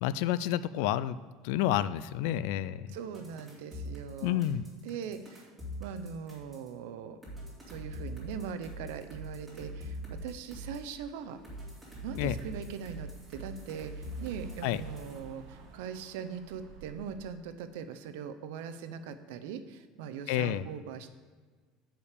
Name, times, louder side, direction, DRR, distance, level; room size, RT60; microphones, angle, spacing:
voice 1, 0.0-1.2 1.4-2.9 4.2-4.6 12.2-12.3 14.6-14.8 20.3-20.6, left 12 dB, 65° left, 16 dB, 0.3 m, -29 dB
voice 2, 2.9-4.4 4.8-5.5 5.8-7.2 7.7-11.4 12.0-21.1, right 7 dB, 75° right, 10 dB, 0.6 m, -41 dB
sound 1, 3.1-6.7 7.2-10.9 11.4-15.2, equal, 5° right, 2.2 m, -42 dB
Car / Engine, 10.7-17.4, right 5 dB, 50° right, 1.2 m, -56 dB
7.2 x 5.1 x 6.6 m, 1.5 s
cardioid pair, 175°, 0 cm